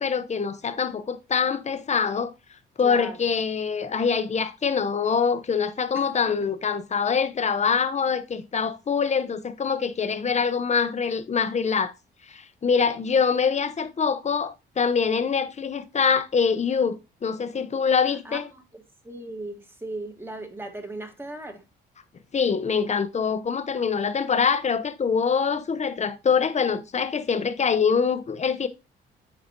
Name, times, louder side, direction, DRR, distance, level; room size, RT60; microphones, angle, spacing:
voice 1, 0.0-2.3 2.8-11.9 12.3-18.5 22.3-28.7, left 6 dB, 35° left, 0.8 m, -24 dB
voice 2, 2.8-3.3 5.9-6.1 18.2-21.6, right 2 dB, 10° right, 1.6 m, -37 dB
9.7 x 4.0 x 2.9 m
cardioid pair, 90°, 20 cm